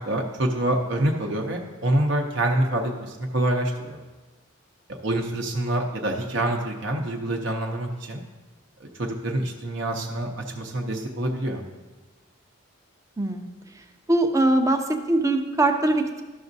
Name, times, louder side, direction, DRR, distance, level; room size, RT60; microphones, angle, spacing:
voice 1, 0.0-4.0 5.0-8.2 8.8-11.6, right 1 dB, 60° right, 1 dB, 0.7 m, -26 dB
voice 2, 13.2-13.5 14.1-16.2, right 2 dB, 15° right, 5 dB, 0.5 m, -22 dB
13.0 x 6.0 x 2.7 m, 1.2 s
head